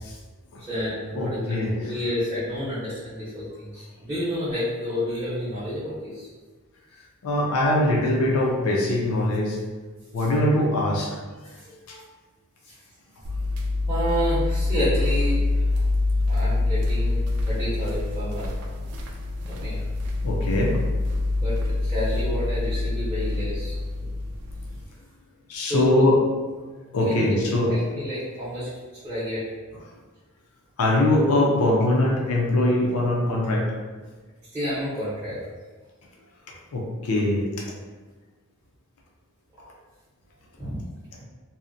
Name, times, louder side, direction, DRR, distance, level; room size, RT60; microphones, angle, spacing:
voice 1, 0.6-6.3 11.6-11.7 13.9-15.7 16.3-18.5 19.4-19.8 21.4-24.0 25.6-26.0 27.1-28.7 29.0-29.4 34.5-35.4 40.6-40.8 41.2-41.3, equal, 10° right, -14 dB, 0.6 m, -30 dB
voice 2, 1.1-1.7 7.2-9.6 10.1-11.2 11.9-12.0 20.2-20.8 25.5-26.1 26.9-27.7 30.8-33.6 36.7-37.6, left 1 dB, 80° left, -2 dB, 0.5 m, -22 dB
sound 1, 13.2-24.8, left 2 dB, 85° right, 0.4 m, -25 dB
2.7 x 2.0 x 2.5 m, 1.3 s
head